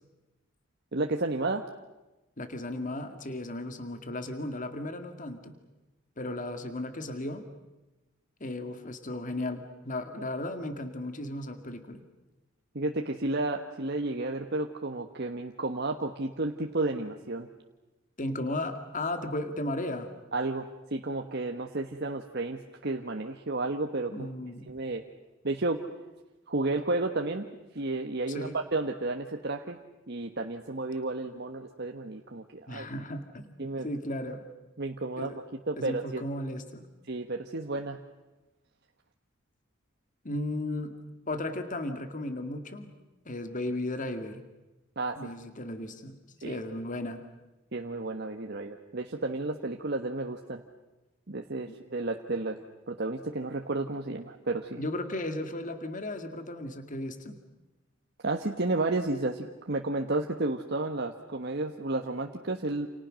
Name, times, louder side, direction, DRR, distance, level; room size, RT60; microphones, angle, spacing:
voice 1, 0.9-1.6 12.7-17.5 20.3-24.3 24.7-25.0 25.4-25.8 26.5-27.5 27.7-29.8 30.1-32.9 33.6-33.9 34.8-35.3 35.7-36.2 37.1-38.0 45.0-45.3 46.4-46.6 47.7-50.6 51.3-54.8 58.2-62.9, right 2 dB, 55° right, 4 dB, 1.4 m, -32 dB
voice 2, 2.4-5.5 6.2-7.5 8.4-12.0 18.2-20.1 24.1-24.7 28.3-28.6 32.7-34.4 35.2-35.4 35.8-36.9 40.2-40.9 41.3-42.9 43.3-44.4 45.2-47.2 54.8-57.4, left 1 dB, 40° left, 8 dB, 2.2 m, -35 dB
29.0 x 29.0 x 6.4 m, 1.0 s
head